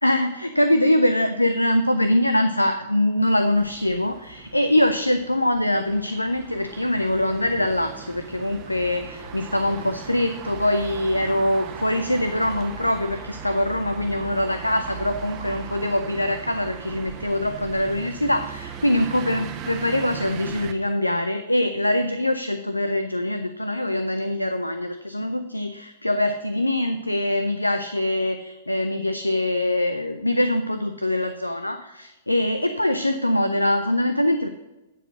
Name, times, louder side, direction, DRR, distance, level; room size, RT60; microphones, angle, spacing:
voice 1, 0.0-34.5, left 1 dB, 90° left, 9 dB, 0.5 m, -23 dB
sound 1, 3.5-20.7, right 7 dB, 30° right, 1.0 m, -38 dB
9.8 x 4.8 x 6.0 m, 1.0 s
figure-of-eight pair, 110°, 0 cm